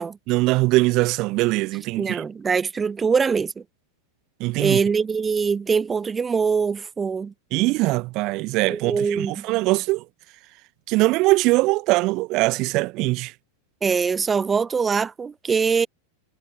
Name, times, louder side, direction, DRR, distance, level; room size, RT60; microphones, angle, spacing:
voice 1, 0.3-2.2 4.4-4.8 7.5-10.0 10.9-13.3, right 22 dB, 40° right, 1.6 m, -21 dB
voice 2, 2.0-3.6 4.6-7.3 8.7-9.4 13.8-15.9, right 5 dB, 15° right, 0.4 m, -23 dB
figure-of-eight pair, 90°, 0 cm